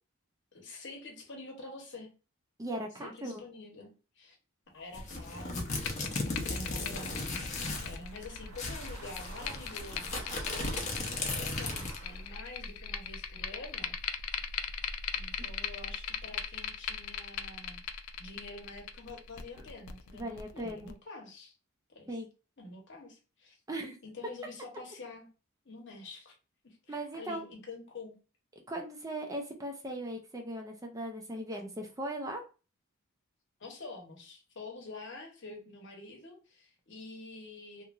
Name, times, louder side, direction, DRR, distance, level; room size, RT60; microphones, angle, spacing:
voice 1, 0.5-2.1 3.0-3.9 4.2-4.4 4.7-5.6 6.4-7.5 7.8-13.9 15.1-17.8 18.2-21.6 21.9-22.1 22.6-23.6 24.0-25.3 25.6-26.3 26.6-28.1 33.6-37.8, left 3 dB, 55° left, 1 dB, 1.0 m, -47 dB
voice 2, 2.6-3.4 20.1-20.9 22.1-22.3 23.7-24.0 26.9-27.4 28.7-32.4, right 1 dB, 15° right, 2 dB, 0.4 m, -38 dB
sound 1, 4.9-8.0 8.2-8.3 8.6-12.1, left 3 dB, 35° left, 0.7 m, -36 dB
sound 2, 5.6-20.9, left 7 dB, 75° left, 0.3 m, -40 dB
sound 3, 6.0-12.5, right 4 dB, 65° right, 0.6 m, -52 dB
2.9 x 2.5 x 2.4 m, 0.33 s
head